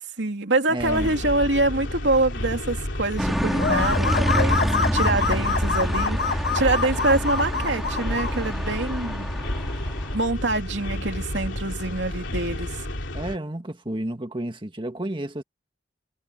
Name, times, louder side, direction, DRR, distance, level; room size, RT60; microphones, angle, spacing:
voice 1, 0.2-9.3 10.1-12.8, right 2 dB, 70° right, 2.9 m, -25 dB
voice 2, 0.7-1.2 13.1-15.4, right 1 dB, 25° right, 1.8 m, -31 dB
sound 1, 0.8-13.4, left 1 dB, 85° left, 3.3 m, -31 dB
sound 2, 3.2-10.1, equal, ahead, 3.6 m, -27 dB
sound 3, 3.6-8.3, left 5 dB, 60° left, 1.6 m, -26 dB
head